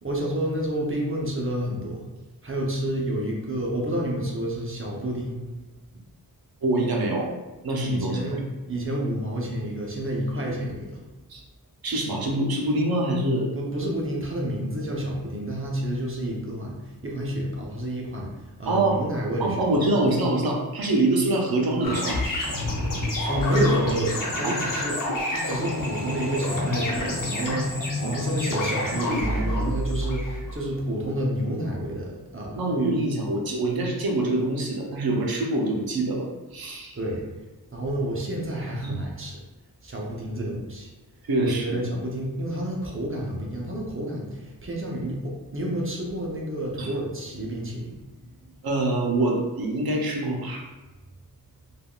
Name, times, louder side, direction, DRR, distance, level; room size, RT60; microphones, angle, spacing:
voice 1, 0.0-2.1 2.4-5.4 7.8-8.4 8.7-11.0 13.5-19.6 23.3-24.9 25.3-32.6 36.9-37.2 37.7-39.4 39.8-40.9 41.4-48.6, right 1 dB, 35° right, -2 dB, 0.6 m, -29 dB
voice 2, 6.6-7.3 7.6-8.4 11.3-11.4 11.8-13.5 18.7-19.0 19.4-22.2 24.4-24.6 28.0-28.1 32.6-36.3 36.5-37.0 38.8-39.0 40.4-40.6 41.3-41.9 46.8-46.9 48.6-50.6, right 2 dB, 75° right, 0 dB, 0.6 m, -25 dB
sound 1, 21.8-30.6, left 1 dB, 60° left, 0.7 m, -28 dB
3.4 x 2.3 x 2.2 m, 1.1 s
wide cardioid pair, 90°, 36 cm